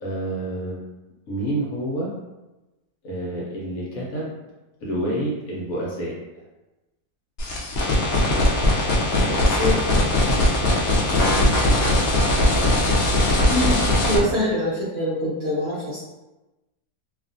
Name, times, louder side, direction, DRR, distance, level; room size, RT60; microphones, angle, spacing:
voice 1, 0.0-0.8 1.3-2.1 3.0-4.3 4.8-6.1 11.1-11.5, right 1 dB, 65° left, -4 dB, 1.1 m, -28 dB
sound 1, 7.4-14.2, left 1 dB, 85° left, 0.5 m, -20 dB
voice 2, 9.1-9.8 13.5-13.8 14.1-16.0, equal, 55° right, -9 dB, 0.7 m, -25 dB
2.7 x 2.3 x 2.5 m, 1.1 s
omnidirectional pair, 1.7 m